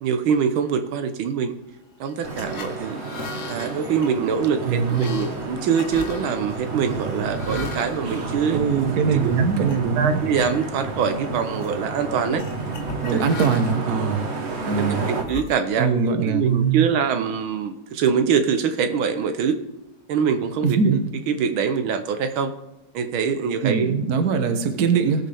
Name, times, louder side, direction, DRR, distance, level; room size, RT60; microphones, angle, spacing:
voice 1, 0.0-1.6 2.0-3.0 3.5-8.6 9.1-9.7 10.0-12.4 13.1-13.2 14.8-19.6 20.1-20.8 21.3-22.5 22.9-23.9, right 6 dB, 85° right, 8 dB, 1.7 m, -24 dB
sound 1, 2.1-9.1 9.6-9.8 10.2-10.8 11.1-11.8 12.4-13.9 14.5-16.0, left 5 dB, 45° left, 1.2 m, -39 dB
sound 2, 2.2-15.2, right 3 dB, 35° right, 1.4 m, -30 dB
voice 2, 4.6-5.2 8.5-10.2 13.0-14.3 14.7-15.1 15.8-16.9 20.6-21.0 23.6-25.3, right 5 dB, 55° right, 7 dB, 1.6 m, -22 dB
19.5 x 6.7 x 3.5 m, 0.96 s
omnidirectional pair, 2.2 m